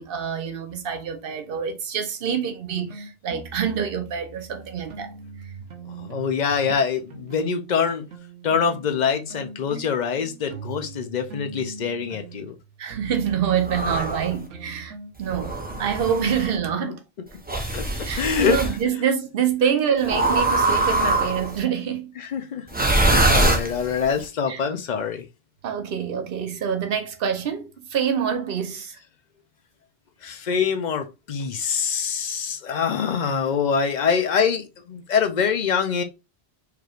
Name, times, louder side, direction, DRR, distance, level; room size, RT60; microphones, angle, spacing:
voice 1, 0.0-5.1 12.8-14.9 15.2-17.0 18.1-22.1 24.5-24.6 25.6-29.0, right 8 dB, 55° right, 0.9 m, -26 dB
sound 1, 2.7-6.8 7.1-16.6, right 4 dB, 80° right, 1.1 m, -41 dB
voice 2, 5.9-8.0 8.4-12.5 16.7-16.9 17.7-17.8 18.2-18.6 22.2-22.6 23.0-25.2 30.2-36.0, left 6 dB, 50° left, 0.6 m, -24 dB
sound 2, 13.7-14.3 15.3-16.5 17.5-18.7 20.1-21.6 22.7-24.1, right 2 dB, 10° right, 0.5 m, -22 dB
4.8 x 3.1 x 2.4 m
omnidirectional pair, 1.2 m